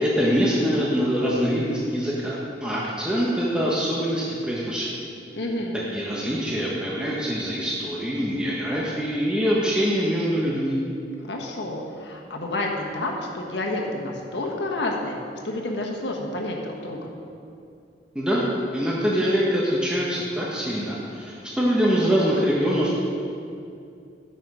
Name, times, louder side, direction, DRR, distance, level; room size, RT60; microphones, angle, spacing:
voice 1, 0.0-5.1 5.9-10.8 18.1-18.4 18.7-23.0, equal, 5° right, -5 dB, 1.0 m, -24 dB
voice 2, 5.3-5.8 11.2-12.7 12.9-15.2 15.4-17.1, left 2 dB, 75° left, 0 dB, 1.3 m, -29 dB
11.0 x 6.7 x 4.9 m, 2.5 s
head